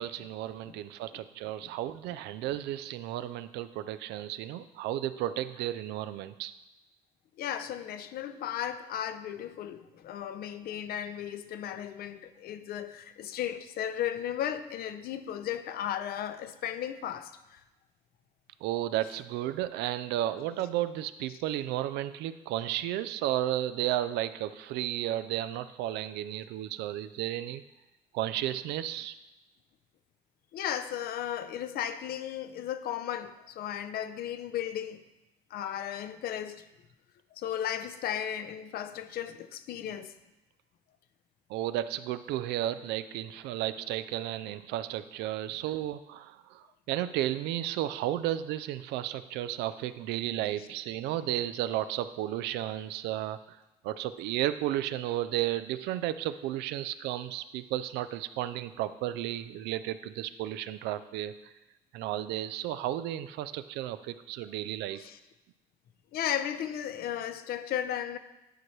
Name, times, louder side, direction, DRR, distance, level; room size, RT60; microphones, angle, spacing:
voice 1, 0.0-6.5 18.6-27.6 28.1-29.1 41.5-53.6 53.8-61.5 61.9-65.0, right 13 dB, 85° right, 0.4 m, -33 dB
voice 2, 7.4-17.6 30.5-35.0 35.5-36.6 37.4-40.1 65.0-65.2 66.1-68.2, left 10 dB, 65° left, 0.6 m, -35 dB
11.0 x 4.5 x 3.2 m
cardioid pair, 110°, 17 cm